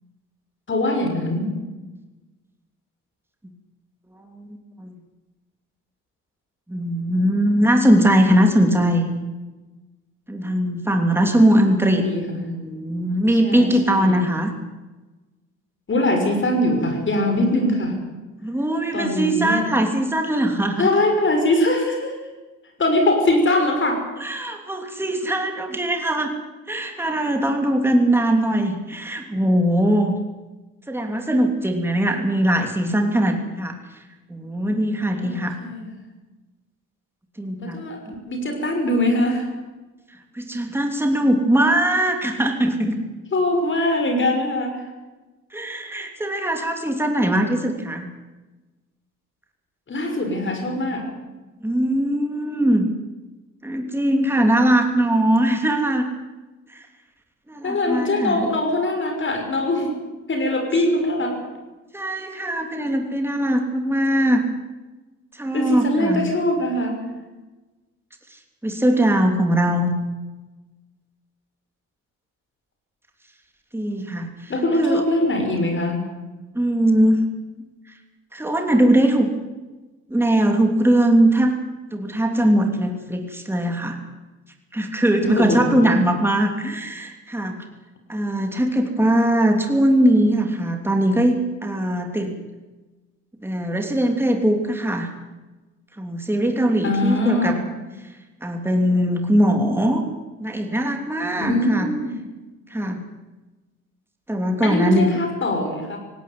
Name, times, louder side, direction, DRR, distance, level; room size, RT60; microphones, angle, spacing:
voice 1, 0.7-1.6 11.8-12.4 13.4-14.2 15.9-18.0 18.9-19.7 20.8-22.2 22.8-24.0 35.2-35.9 37.6-38.0 38.3-39.5 43.3-44.8 49.9-51.1 57.6-59.9 60.3-61.4 65.5-67.0 74.5-76.0 85.2-86.0 96.8-97.6 101.4-102.2 104.6-106.0, left 1 dB, 40° left, 3 dB, 6.1 m, -22 dB
voice 2, 4.3-4.9 6.7-9.1 10.3-12.1 12.3-14.5 18.4-20.9 24.2-26.3 26.7-30.1 30.9-33.8 34.3-35.6 37.4-37.8 40.3-43.0 45.5-48.1 51.6-52.9 53.6-56.1 56.7-56.8 57.5-58.4 61.9-64.4 65.3-66.3 68.6-69.9 73.7-74.5 74.8-75.0 76.5-77.2 78.3-79.3 80.1-81.5 81.9-84.0 84.7-87.6 88.1-92.3 93.4-95.1 96.0-97.6 98.4-100.0 100.4-101.9 102.7-103.0 104.3-105.1, right 1 dB, 10° right, 4 dB, 3.1 m, -20 dB
19.0 x 17.0 x 9.6 m, 1.2 s
cardioid pair, 90°, 30 cm